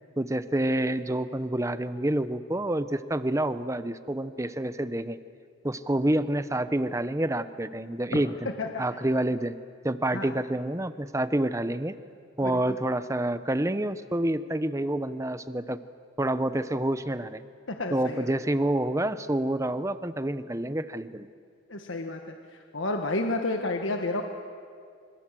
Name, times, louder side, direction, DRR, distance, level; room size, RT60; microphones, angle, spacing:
voice 1, 0.2-5.2 5.6-8.5 8.8-9.5 9.8-12.0 12.4-15.8 16.2-17.4 17.9-21.3, right 1 dB, 15° right, 12 dB, 0.8 m, -28 dB
voice 2, 17.7-18.3 21.7-22.2 22.7-24.2, left 2 dB, 70° left, 4 dB, 1.5 m, -30 dB
27.5 x 25.5 x 7.6 m, 2.2 s
head